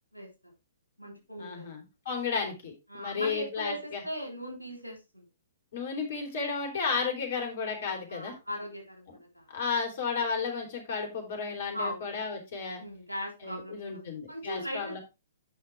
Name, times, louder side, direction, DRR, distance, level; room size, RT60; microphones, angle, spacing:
voice 1, 0.1-0.5 1.0-1.7 2.9-5.3 8.1-9.5 11.7-12.1 12.8-14.0 14.3-14.9, equal, 90° right, 1 dB, 3.7 m, -39 dB
voice 2, 1.4-4.0 5.7-8.3 9.5-12.8 13.4-15.0, left 5 dB, 50° left, 3 dB, 3.4 m, -33 dB
8.9 x 5.8 x 3.5 m, 0.27 s
figure-of-eight pair, 120°, 0 cm